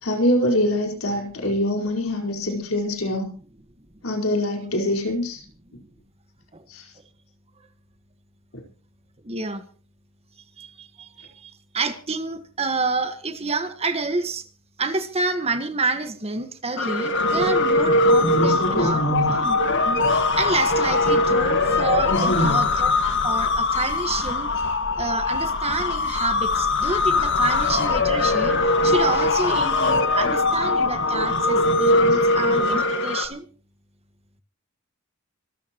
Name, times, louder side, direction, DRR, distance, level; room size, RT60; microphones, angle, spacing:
voice 1, 0.0-3.3 4.0-5.4 6.7-6.9 8.5-8.6 18.0-19.4 21.3-21.4 22.1-22.6, left 1 dB, 80° left, 2 dB, 4.6 m, -24 dB
voice 2, 9.2-9.6 10.6-14.5 14.8-19.0 19.4-22.9 23.2-24.5 25.0-28.6 28.8-33.5, right 3 dB, 30° right, 8 dB, 1.6 m, -28 dB
sound 1, 16.8-33.2, left 2 dB, 60° left, 2.0 m, -21 dB
25.5 x 13.5 x 3.1 m, 0.39 s
head